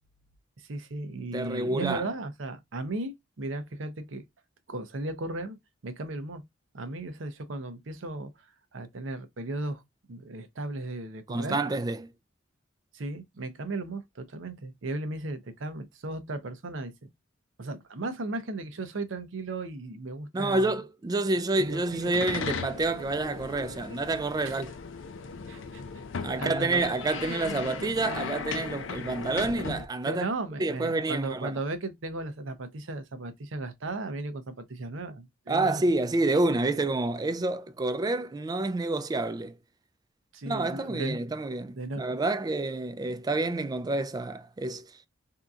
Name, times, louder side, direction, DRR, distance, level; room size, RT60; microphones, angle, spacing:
voice 1, 0.6-4.2 4.7-5.6 5.8-6.4 6.7-9.8 10.1-11.6 12.9-16.9 17.6-20.8 21.6-22.1 24.4-24.6 25.5-26.9 30.1-35.8 40.3-41.3 41.7-42.1, right 2 dB, 80° right, 0.7 m, -36 dB
voice 2, 1.2-2.0 11.3-12.1 20.3-24.7 26.2-30.2 30.6-31.5 35.5-39.6 40.5-44.9, right 2 dB, 20° right, 0.3 m, -28 dB
sound 1, 21.6-29.9, left 5 dB, 70° left, 0.5 m, -37 dB
3.6 x 2.8 x 2.4 m
head